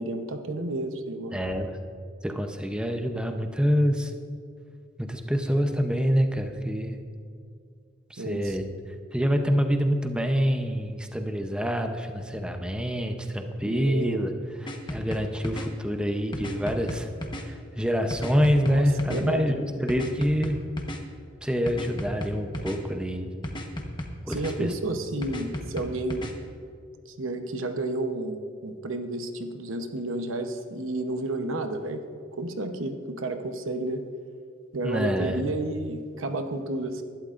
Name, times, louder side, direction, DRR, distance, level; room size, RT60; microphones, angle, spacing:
voice 1, 0.0-1.4 8.2-8.6 13.6-14.2 18.6-18.8 19.1-19.4 24.3-26.3 27.0-32.0 32.4-34.0 34.7-37.0, right 2 dB, 80° right, 7 dB, 0.9 m, -31 dB
voice 2, 1.3-1.7 2.2-4.1 5.0-7.0 8.1-8.7 9.1-14.3 14.6-17.1 17.4-20.6 21.4-23.3 24.3-24.7 34.8-35.4, equal, 5° right, 5 dB, 0.7 m, -26 dB
sound 1, 14.7-15.7 16.3-17.4 18.1-19.2 19.9-21.0 21.7-22.8 23.4-24.5 25.2-26.3, left 1 dB, 25° left, 1.1 m, -34 dB
20.0 x 12.0 x 2.5 m, 2.3 s
head